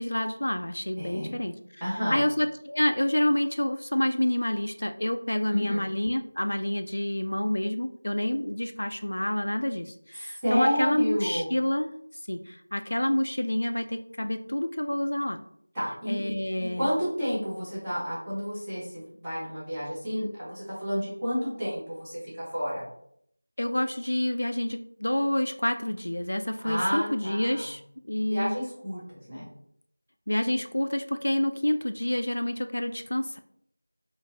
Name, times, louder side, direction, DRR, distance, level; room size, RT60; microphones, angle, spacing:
voice 1, 0.0-1.8 2.1-11.9 12.3-15.4 16.1-16.9 23.6-28.6 30.3-33.4, left 1 dB, 65° left, 7 dB, 0.3 m, -28 dB
voice 2, 1.0-1.4 1.8-2.2 5.5-5.8 10.1-11.5 15.7-22.8 26.6-27.7 28.3-29.5, equal, 5° right, -13 dB, 0.7 m, -30 dB
3.9 x 2.5 x 2.7 m, 0.68 s
figure-of-eight pair, 180°, 0 cm